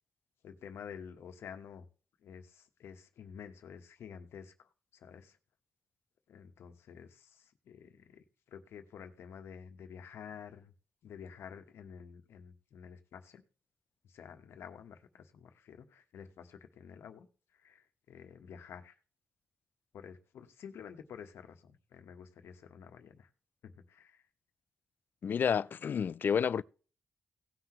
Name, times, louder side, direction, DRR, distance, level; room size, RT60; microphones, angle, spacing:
voice 1, 0.4-1.9 2.2-5.4 6.3-10.7 11.0-13.4 14.0-17.3 17.6-18.9 19.9-23.3 23.6-24.2, left 7 dB, 85° left, 1.3 m, -50 dB
voice 2, 25.2-26.6, left 7 dB, 50° left, 0.4 m, -30 dB
17.5 x 5.9 x 3.1 m
cardioid pair, 115°, 4 cm